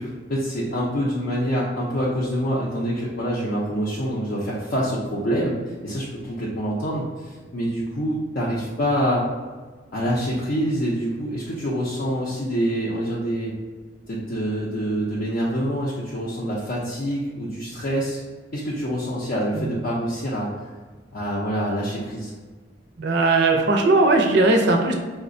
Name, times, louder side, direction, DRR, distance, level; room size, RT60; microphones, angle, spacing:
voice 1, 0.0-9.2 9.9-13.5 14.1-18.2 18.5-20.7 21.1-22.3, equal, 55° left, -5 dB, 0.5 m, -26 dB
voice 2, 23.0-24.9, right 2 dB, 65° right, 2 dB, 0.5 m, -18 dB
4.8 x 2.1 x 2.5 m, 1.4 s
head